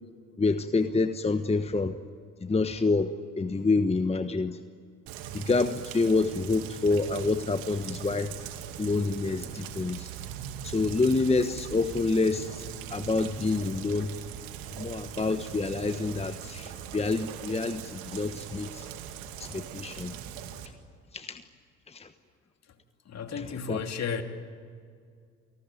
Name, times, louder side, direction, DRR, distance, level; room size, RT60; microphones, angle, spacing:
voice 1, 0.4-1.9 2.4-3.1 3.4-4.6 5.3-8.3 8.8-10.1 10.6-12.6 12.9-14.2 14.7-18.9 19.4-20.2 21.1-21.4 21.9-22.1 23.4-23.8, left 3 dB, 15° left, 9 dB, 1.2 m, -27 dB
Rain, 5.1-20.7, right 9 dB, 70° right, 2.4 m, -41 dB
voice 2, 23.1-24.2, left 6 dB, 45° left, 6 dB, 2.9 m, -33 dB
29.0 x 19.0 x 9.4 m, 2.2 s
hypercardioid pair, 65°, 37 cm